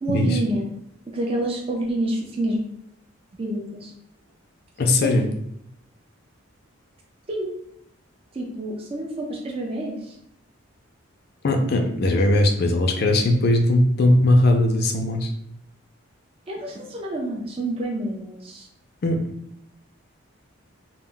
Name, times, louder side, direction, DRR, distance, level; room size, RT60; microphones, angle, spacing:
voice 1, 0.0-0.7 1.1-2.6 3.4-3.9 5.0-5.1 7.3-7.5 8.3-10.2 16.5-18.7, right 1 dB, 25° right, -1 dB, 0.3 m, -28 dB
voice 2, 4.8-5.2 11.4-15.3 19.0-19.2, left 1 dB, 50° left, 4 dB, 0.4 m, -19 dB
2.1 x 2.0 x 3.7 m, 0.76 s
head